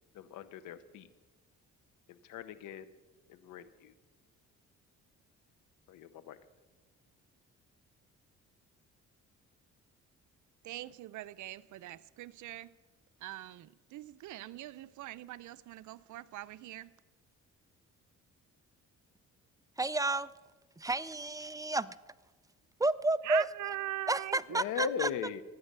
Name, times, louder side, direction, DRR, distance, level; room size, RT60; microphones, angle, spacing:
voice 1, 0.1-1.1 2.1-2.9 3.3-3.9 5.9-6.4 24.5-25.4, left 10 dB, 85° left, 0.9 m, -39 dB
voice 2, 10.6-12.7 13.2-16.9 23.2-24.9, right 15 dB, 75° right, 0.6 m, -42 dB
voice 3, 19.8-20.3 20.8-21.9 22.8-23.4 24.1-25.1, right 2 dB, 10° right, 0.4 m, -31 dB
13.0 x 9.6 x 6.7 m
cardioid pair, 90°, 30 cm